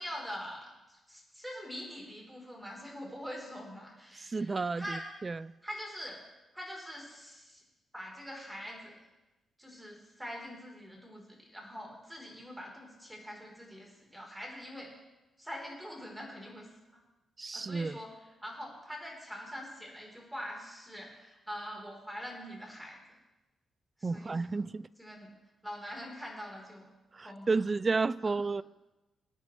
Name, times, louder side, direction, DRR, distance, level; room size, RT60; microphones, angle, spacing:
voice 1, 0.0-5.1 5.6-6.2 6.5-7.6 7.9-9.0 9.6-14.9 15.4-17.0 17.5-23.0 24.0-24.7 25.0-25.3 25.6-26.9 27.2-27.6 28.2-28.3, equal, 5° right, 4.4 m, -44 dB
voice 2, 4.3-5.5 17.4-18.0 24.0-24.9 27.1-28.6, right 4 dB, 30° right, 0.3 m, -32 dB
21.0 x 9.5 x 3.4 m
cardioid pair, 95°, 0 cm